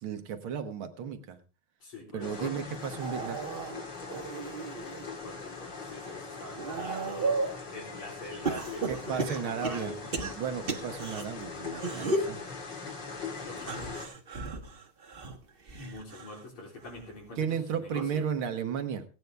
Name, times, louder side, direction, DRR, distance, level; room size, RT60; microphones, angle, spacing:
voice 1, 0.0-1.4 2.1-3.4 8.9-12.4 17.4-19.0, right 7 dB, 75° right, 7 dB, 2.0 m, -34 dB
voice 2, 1.8-2.5 5.2-10.1 12.8-13.0 13.4-13.9 15.7-17.5 17.7-18.2, left 2 dB, 85° left, -1 dB, 4.4 m, -44 dB
sound 1, 2.2-14.1, left 4 dB, 55° left, 2.8 m, -41 dB
sound 2, 2.8-5.1 5.6-7.6 8.5-11.2 11.7-12.4 13.6-16.5 16.8-17.2 18.4-18.5, right 3 dB, 30° right, 1.2 m, -35 dB
16.5 x 9.4 x 3.4 m, 0.35 s
omnidirectional pair, 2.3 m